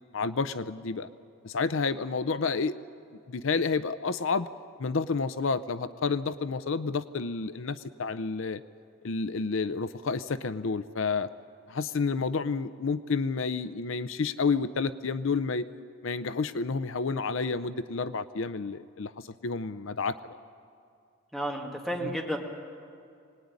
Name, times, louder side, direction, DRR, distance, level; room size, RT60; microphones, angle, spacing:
voice 1, 0.1-1.1 1.4-2.7 3.3-4.5 4.8-8.6 9.0-11.3 11.7-15.7 16.0-19.1 19.4-20.2 22.0-22.1, left 4 dB, 60° left, 13 dB, 0.6 m, -30 dB
voice 2, 21.3-22.4, equal, ahead, -2 dB, 2.2 m, -32 dB
23.5 x 19.0 x 9.7 m, 2.4 s
head